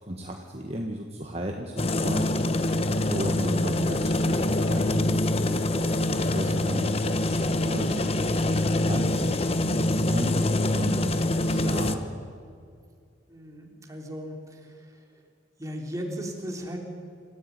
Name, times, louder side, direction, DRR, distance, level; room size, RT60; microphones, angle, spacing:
voice 1, 0.0-2.6 3.1-5.3 5.9-8.3 8.9-12.0, right 1 dB, 35° right, 2 dB, 1.6 m, -35 dB
sound 1, 1.8-12.0, left 1 dB, 30° left, 1.0 m, -25 dB
voice 2, 13.3-14.9 15.6-16.8, equal, 15° right, 0 dB, 3.5 m, -36 dB
27.0 x 15.0 x 9.5 m, 2.3 s
head